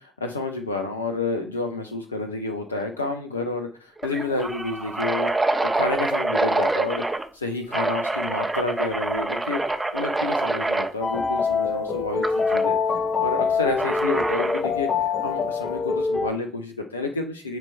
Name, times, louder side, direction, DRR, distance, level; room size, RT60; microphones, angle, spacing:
voice 1, 0.0-7.0 7.3-17.6, left 3 dB, 85° left, 6 dB, 0.5 m, -30 dB
sound 1, 2.8-3.0 3.3-3.4 4.0-7.3 7.7-10.9 12.2-12.6 13.8-14.7, right 2 dB, 20° right, 1.2 m, -26 dB
sound 2, 11.0-16.3, left 5 dB, 50° left, 0.9 m, -24 dB
8.9 x 3.3 x 5.2 m, 0.40 s
figure-of-eight pair, 40°, 0 cm